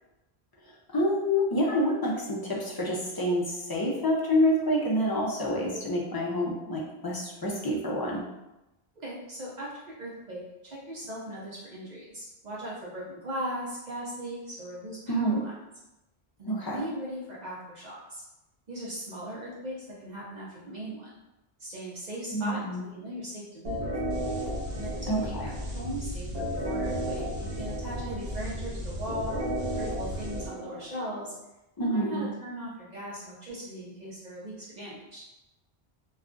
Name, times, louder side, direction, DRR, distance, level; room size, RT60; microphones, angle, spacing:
voice 1, 0.6-8.2 15.1-15.4 16.4-16.8 22.3-22.9 25.1-25.4 31.8-32.3, equal, 35° left, -3 dB, 0.4 m, -28 dB
voice 2, 9.0-15.5 16.4-18.2 18.7-21.2 21.6-23.9 24.8-31.3 31.8-35.2, right 1 dB, 50° right, -5 dB, 0.7 m, -39 dB
sound 1, 23.6-31.3, equal, 65° right, 1.0 m, -33 dB
2.4 x 2.3 x 3.7 m, 0.95 s
omnidirectional pair, 1.0 m